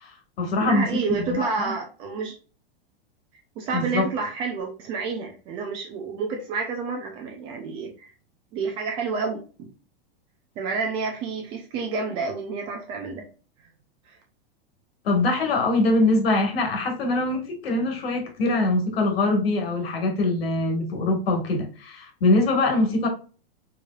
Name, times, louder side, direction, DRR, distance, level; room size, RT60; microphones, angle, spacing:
voice 1, 0.0-1.7 3.7-4.0 15.0-23.1, left 2 dB, 75° left, 1.6 m, -23 dB
voice 2, 0.6-2.4 3.6-8.1 8.5-9.7 10.6-13.3 14.1-14.2, right 4 dB, 15° right, 0.3 m, -29 dB
4.5 x 3.1 x 2.3 m
supercardioid pair, 160°, 30 cm